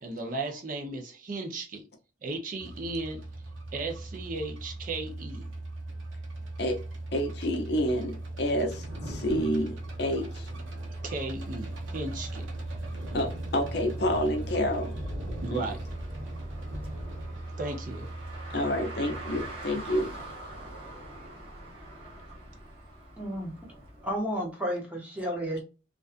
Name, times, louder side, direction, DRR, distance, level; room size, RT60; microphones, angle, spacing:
voice 1, 0.0-1.9 2.2-3.2 3.7-5.5 10.2-10.3 10.7-12.5 15.4-15.8 17.6-18.1 20.6-21.0, right 2 dB, 45° right, 0.5 m, -36 dB
sound 1, 2.6-21.2, right 2 dB, 90° right, 0.7 m, -39 dB
voice 2, 7.1-10.5 13.1-15.0 15.5-15.6 18.5-20.2, equal, 55° left, 0.6 m, -29 dB
Thunder, 8.4-22.9 23.1-24.4, equal, 65° right, 1.0 m, -45 dB
Car, 15.6-24.2, right 2 dB, 30° right, 1.0 m, -44 dB
voice 3, 23.2-23.5 24.0-25.6, equal, 5° right, 0.7 m, -32 dB
2.5 x 2.3 x 2.4 m
head